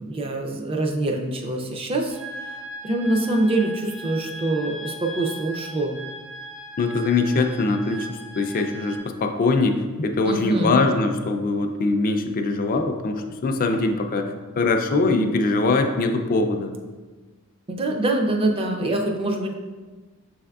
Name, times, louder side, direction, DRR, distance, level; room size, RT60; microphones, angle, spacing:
voice 1, 0.0-2.2 2.8-6.0 10.2-10.8 17.7-19.5, right 2 dB, 25° right, 2 dB, 0.4 m, -24 dB
sound 1, 2.1-9.0, equal, 60° right, 1.0 m, -38 dB
voice 2, 6.8-16.7, left 3 dB, 40° left, 5 dB, 0.3 m, -22 dB
6.0 x 3.5 x 2.3 m, 1.3 s
head